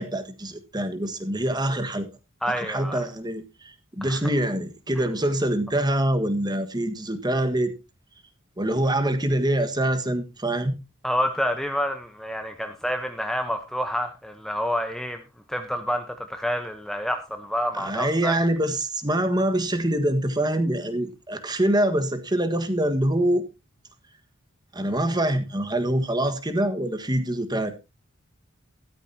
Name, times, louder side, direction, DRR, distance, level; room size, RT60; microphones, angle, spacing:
voice 1, 0.0-2.1 2.5-7.7 8.6-10.7 17.7-23.4 24.7-27.7, right 1 dB, 20° right, 1.5 m, -25 dB
voice 2, 2.4-3.0 4.0-4.2 11.0-15.2 15.5-18.4, equal, ahead, 0.9 m, -28 dB
13.5 x 13.0 x 2.8 m
head